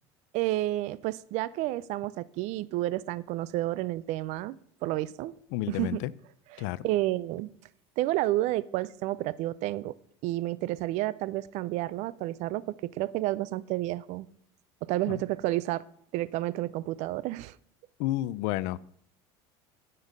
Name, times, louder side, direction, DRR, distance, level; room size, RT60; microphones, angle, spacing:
voice 1, 0.3-5.3 5.7-6.1 6.5-7.5 8.0-9.9 10.2-14.3 14.8-15.8 16.1-17.6, right 16 dB, 60° right, 19 dB, 0.5 m, -30 dB
voice 2, 5.5-6.1 6.6-6.9 15.1-15.2 18.0-18.8, left 16 dB, 70° left, 20 dB, 0.4 m, -31 dB
10.0 x 5.5 x 5.2 m, 0.63 s
supercardioid pair, 95°, 13 cm